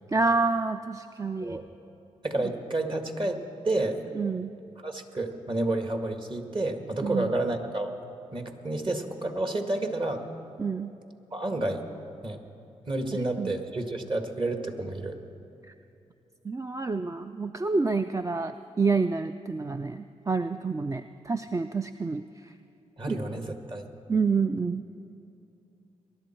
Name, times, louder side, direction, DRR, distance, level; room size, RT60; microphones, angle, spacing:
voice 1, 0.1-1.6 4.2-4.5 7.0-7.3 10.6-10.9 13.4-13.5 16.4-22.5 23.1-23.2 24.1-25.0, right 4 dB, 25° right, 9 dB, 0.4 m, -28 dB
voice 2, 2.2-4.0 4.8-7.9 8.3-10.2 11.3-11.8 12.2-12.4 12.9-15.2 23.0-23.9, right 2 dB, 40° right, 5 dB, 1.7 m, -30 dB
21.5 x 11.5 x 4.4 m, 2.7 s
cardioid pair, 50°, 12 cm